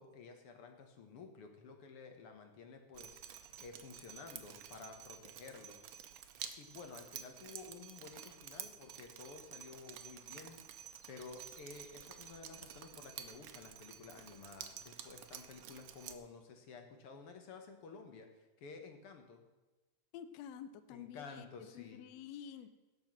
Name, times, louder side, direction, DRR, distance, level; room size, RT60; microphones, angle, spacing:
voice 1, 0.0-5.8 6.6-19.4 20.9-22.0, left 4 dB, 55° left, 5 dB, 1.9 m, -53 dB
Drip, 2.9-16.1, right 9 dB, 70° right, 1.4 m, -51 dB
voice 2, 20.1-21.5 21.7-22.7, left 9 dB, 70° left, 11 dB, 1.8 m, -49 dB
16.5 x 6.0 x 7.5 m, 1.1 s
omnidirectional pair, 3.4 m